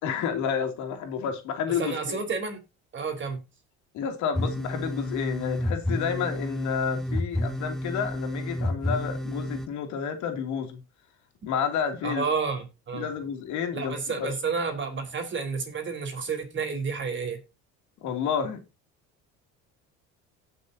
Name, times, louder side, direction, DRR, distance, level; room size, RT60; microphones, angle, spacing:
voice 1, 0.0-2.2 3.9-10.8 11.5-12.3 12.9-14.3 18.0-18.6, left 7 dB, 65° left, 2.7 m, -30 dB
voice 2, 1.7-2.6 2.9-3.4 12.0-13.1 13.7-17.4, right 5 dB, 35° right, 4.0 m, -30 dB
sound 1, 4.3-9.7, left 1 dB, ahead, 1.3 m, -30 dB
18.0 x 6.2 x 2.8 m
supercardioid pair, 100°, 31 cm